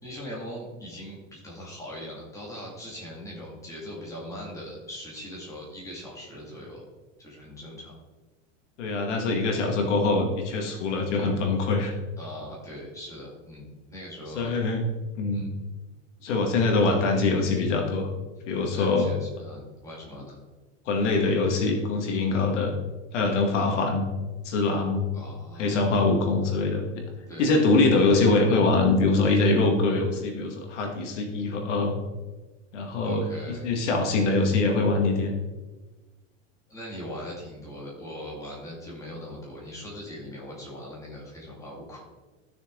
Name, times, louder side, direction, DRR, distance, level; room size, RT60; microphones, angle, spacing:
voice 1, 0.0-6.8 7.2-7.9 12.2-14.5 15.3-15.5 18.7-20.4 25.1-26.0 27.3-27.5 33.0-33.7 36.7-42.0, equal, 10° left, -5 dB, 2.4 m, -40 dB
voice 2, 8.8-11.9 14.4-14.8 15.2-15.5 16.2-18.1 18.5-19.1 20.9-22.7 23.1-24.0 24.4-25.1 25.6-26.8 27.4-32.0 32.7-35.3, left 3 dB, 65° left, 2 dB, 2.2 m, -23 dB
14.0 x 6.6 x 3.9 m, 1.2 s
supercardioid pair, 180°, 38 cm